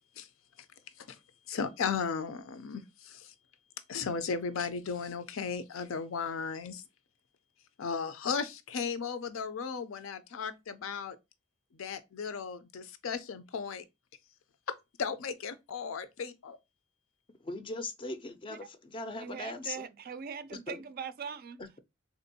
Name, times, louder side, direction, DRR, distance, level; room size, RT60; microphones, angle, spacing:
voice 1, 1.5-3.3 3.9-6.8 7.8-11.2 11.7-13.8 14.7-16.6, left 6 dB, 80° left, 0.5 m, -36 dB
voice 2, 17.4-19.9 20.7-20.8, left 2 dB, 25° left, 0.4 m, -39 dB
voice 3, 19.2-21.6, right 6 dB, 50° right, 0.4 m, -41 dB
3.6 x 2.6 x 2.6 m
head